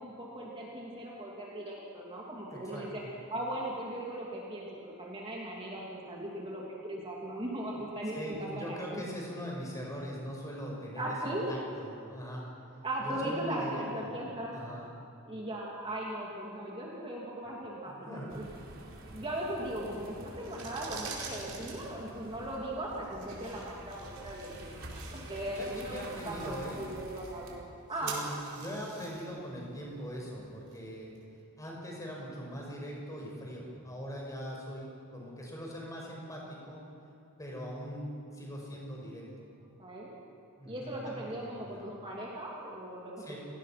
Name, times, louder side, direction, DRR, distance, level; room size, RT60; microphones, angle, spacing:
voice 1, 0.0-3.0 3.3-9.0 11.0-11.6 12.8-14.5 15.3-18.4 19.1-27.5 27.9-28.2 39.8-40.1 40.7-43.3, right 1 dB, 25° right, -4 dB, 2.9 m, -38 dB
voice 2, 2.5-3.1 8.1-11.2 11.5-12.4 13.0-14.2 14.5-14.9 17.9-18.3 25.5-26.8 28.0-31.1 31.6-36.8 37.4-38.1 38.3-39.5 40.6-41.8 43.2-43.4, equal, 15° left, -2 dB, 5.8 m, -41 dB
sound 1, 18.3-27.6, right 1 dB, 60° right, 3.7 m, -48 dB
sound 2, 20.4-31.2, right 5 dB, 80° right, 5.1 m, -48 dB
30.0 x 19.5 x 6.0 m, 2.7 s
head